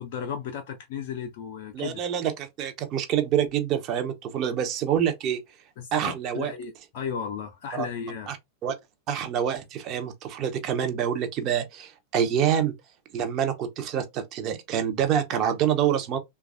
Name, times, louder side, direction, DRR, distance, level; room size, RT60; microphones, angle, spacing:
voice 1, 0.0-2.0 5.8-8.3, left 7 dB, 50° left, 0.4 m, -35 dB
voice 2, 1.7-5.4 5.9-6.5 7.7-7.9 8.3-8.4 8.6-8.7 9.1-12.7 13.1-16.2, right 9 dB, 35° right, 0.5 m, -26 dB
3.2 x 2.2 x 2.4 m
figure-of-eight pair, 90°, 0 cm